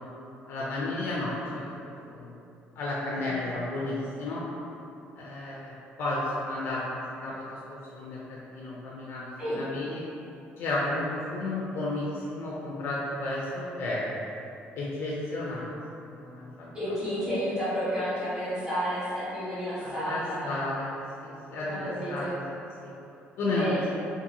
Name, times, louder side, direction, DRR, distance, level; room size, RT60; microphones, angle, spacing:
voice 1, 0.5-1.6 2.1-2.3 2.8-4.4 5.2-5.7 6.0-7.4 7.7-8.2 8.5-10.0 10.6-14.0 14.7-15.7 16.1-16.7 19.8-20.9 21.2-22.4 22.8-22.9 23.4-24.0, left 2 dB, 60° left, -6 dB, 0.4 m, -32 dB
voice 2, 3.1-3.7 9.4-9.6 16.7-20.6 21.6-22.4 23.5-23.8, equal, 20° right, -13 dB, 1.2 m, -31 dB
2.8 x 2.5 x 2.6 m, 2.8 s
cardioid pair, 165°, 4 cm